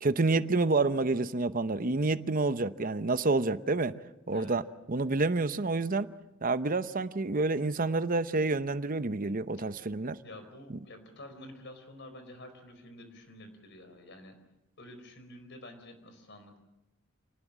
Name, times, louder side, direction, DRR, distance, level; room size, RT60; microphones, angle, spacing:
voice 1, 0.0-3.9 4.3-4.6 4.9-6.1 6.4-10.2, right 3 dB, 40° right, 0.8 m, -28 dB
voice 2, 10.2-14.4 14.8-16.6, left 1 dB, 55° left, 4.6 m, -49 dB
27.5 x 19.5 x 7.4 m
head